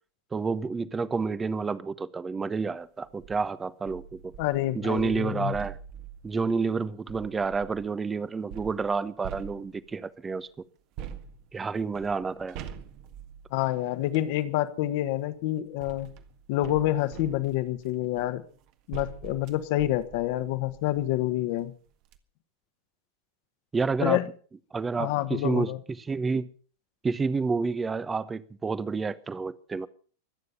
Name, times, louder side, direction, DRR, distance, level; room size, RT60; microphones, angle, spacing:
voice 1, 0.3-4.3 4.7-5.8 6.2-10.5 11.5-12.6 23.7-24.2 24.7-25.7 26.0-26.5 27.0-29.9, right 4 dB, 15° right, 0.9 m, -29 dB
sound 1, 3.0-3.4 3.9-7.9 8.5-10.1 11.0-14.3 15.3-21.2 21.6-21.7 22.0-22.2, right 9 dB, 40° right, 1.6 m, -45 dB
voice 2, 4.4-5.5 13.5-16.1 16.5-18.4 18.9-21.7 24.0-24.3 25.0-25.8, left 14 dB, 50° left, 1.5 m, -27 dB
24.5 x 9.5 x 5.6 m
figure-of-eight pair, 90°, 0 cm